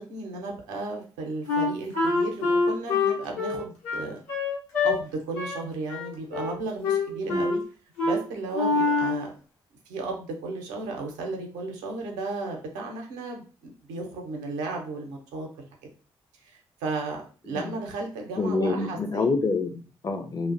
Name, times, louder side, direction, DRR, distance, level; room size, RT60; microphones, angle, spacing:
voice 1, 0.1-4.2 4.8-7.6 8.0-9.3 9.9-15.7 16.4-19.2, right 3 dB, 75° right, 2 dB, 0.6 m, -34 dB
Wind instrument woodwind instrument, 1.5-5.0 5.4-5.6 5.9-6.6 6.8-7.6 8.0-8.2 8.5-9.2, left 3 dB, 75° left, 0.8 m, -25 dB
voice 2, 18.4-20.5, left 3 dB, 30° left, 7 dB, 0.5 m, -27 dB
2.5 x 2.1 x 2.5 m, 0.39 s
figure-of-eight pair, 40°, 13 cm